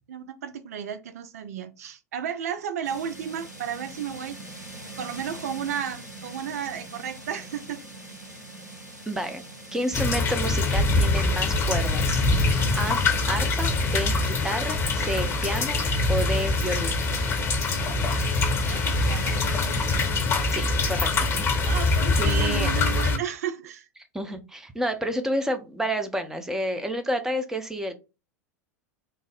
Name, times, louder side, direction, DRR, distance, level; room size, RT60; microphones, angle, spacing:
voice 1, 0.1-4.4 5.0-7.8 18.6-19.4 21.6-23.9, right 8 dB, 65° right, 0.4 m, -33 dB
sound 1, 2.8-20.1, right 2 dB, 90° right, 0.8 m, -42 dB
voice 2, 9.1-9.4 9.7-13.0 13.3-15.8 16.1-17.0 20.5-21.4 22.2-22.7 24.1-27.9, equal, 5° right, 0.6 m, -30 dB
sound 2, 9.9-23.2, left 3 dB, 25° left, 0.9 m, -24 dB
3.3 x 2.0 x 3.4 m
figure-of-eight pair, 85°, 9 cm